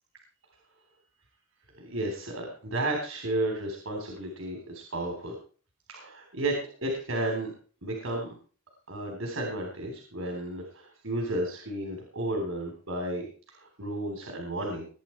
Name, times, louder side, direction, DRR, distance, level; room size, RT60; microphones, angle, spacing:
voice 1, 1.8-5.3 5.9-6.6 6.8-7.5 7.8-8.3 8.9-13.3 13.8-14.8, right 1 dB, 85° right, 2 dB, 3.6 m, -32 dB
20.0 x 9.5 x 4.5 m, 0.41 s
head